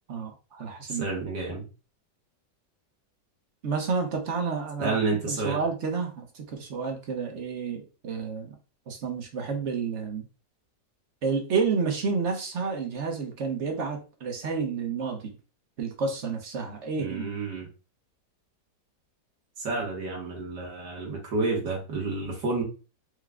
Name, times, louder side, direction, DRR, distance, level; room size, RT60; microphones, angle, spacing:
voice 1, 0.1-1.1 3.6-5.0 5.3-8.5 8.9-10.2 11.2-15.4 15.8-17.3, right 5 dB, 50° right, 3 dB, 1.0 m, -30 dB
voice 2, 0.9-1.7 4.8-5.6 17.0-17.7 19.6-22.6, right 3 dB, 70° right, -2 dB, 1.9 m, -30 dB
4.9 x 2.2 x 3.6 m, 0.33 s
omnidirectional pair, 1.9 m